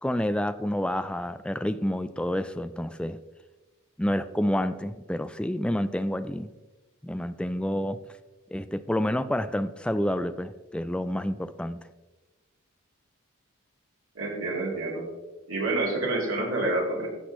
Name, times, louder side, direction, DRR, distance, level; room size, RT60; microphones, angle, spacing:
voice 1, 0.0-3.2 4.0-6.5 7.0-8.0 8.5-11.8, equal, 5° left, 11 dB, 0.3 m, -29 dB
voice 2, 14.1-15.0 15.5-17.1, right 2 dB, 90° right, -3 dB, 3.3 m, -28 dB
16.0 x 6.1 x 3.1 m, 1.2 s
head